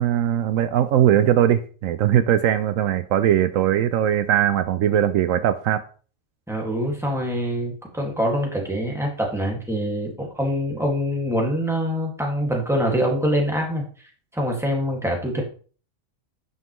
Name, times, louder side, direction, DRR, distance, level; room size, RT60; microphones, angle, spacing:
voice 1, 0.0-5.8, right 10 dB, 80° right, 1.0 m, -20 dB
voice 2, 6.5-13.8 14.3-15.4, equal, ahead, 1.9 m, -24 dB
9.7 x 5.6 x 3.1 m
omnidirectional pair, 1.4 m